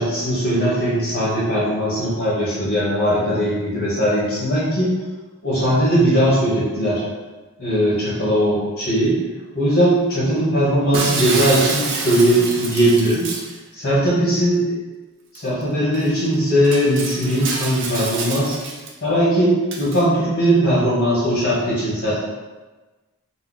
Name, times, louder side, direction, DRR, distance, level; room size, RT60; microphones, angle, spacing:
voice 1, 0.0-4.9 5.4-7.0 7.6-9.2 9.5-13.3 13.7-14.8 15.3-18.6 19.0-22.2, equal, 40° left, -9 dB, 1.3 m, -19 dB
Shatter, 10.9-13.6 15.4-15.5 15.9-16.1 16.6-18.9 19.7-20.0, right 3 dB, 55° right, 0.5 m, -27 dB
3.3 x 2.1 x 3.9 m, 1.2 s
head